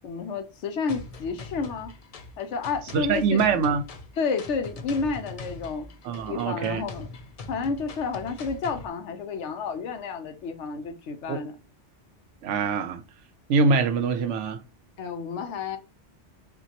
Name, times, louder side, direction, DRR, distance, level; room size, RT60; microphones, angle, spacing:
voice 1, 0.0-1.9 2.4-3.4 4.2-5.9 6.3-7.1 7.5-11.6 15.0-15.8, left 5 dB, 75° left, 1.0 m, -30 dB
sound 1, 0.9-8.9, left 3 dB, 60° left, 0.4 m, -42 dB
voice 2, 2.9-3.8 6.0-6.8 11.3-11.4 12.4-13.0 13.5-14.6, right 5 dB, 80° right, 0.9 m, -24 dB
5.6 x 2.2 x 2.9 m
omnidirectional pair, 1.2 m